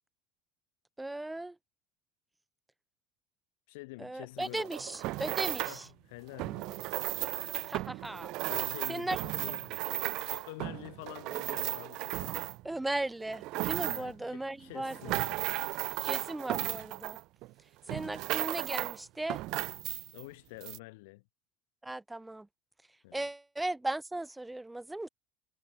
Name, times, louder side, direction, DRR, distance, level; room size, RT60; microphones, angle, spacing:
voice 1, 1.0-1.6 4.0-5.9 7.7-8.3 8.9-9.2 12.6-15.2 16.0-17.2 17.9-19.4 21.8-22.5 23.1-25.1, right 2 dB, 10° right, 0.9 m, -37 dB
voice 2, 3.7-4.7 5.6-7.6 8.5-9.8 10.3-12.5 13.9-15.6 20.1-21.2 23.0-23.3, left 24 dB, 80° left, 0.7 m, -48 dB
sound 1, 4.4-5.8 6.3-12.7 13.2-14.2 14.7-17.5 17.9-19.0 19.3-20.2 20.6-20.8, right 20 dB, 65° right, 0.4 m, -35 dB
supercardioid pair, 100°, 0 cm